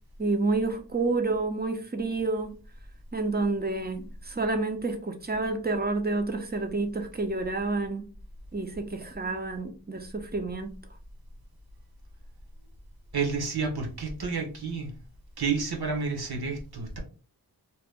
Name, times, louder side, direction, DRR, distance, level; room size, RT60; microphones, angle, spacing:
voice 1, 0.2-2.6 3.1-8.1 8.5-10.7, right 3 dB, 25° right, 0.7 m, -29 dB
voice 2, 13.1-14.9 15.4-17.0, right 5 dB, 70° right, 1.1 m, -30 dB
2.9 x 2.2 x 3.4 m
wide cardioid pair, 60°, 40 cm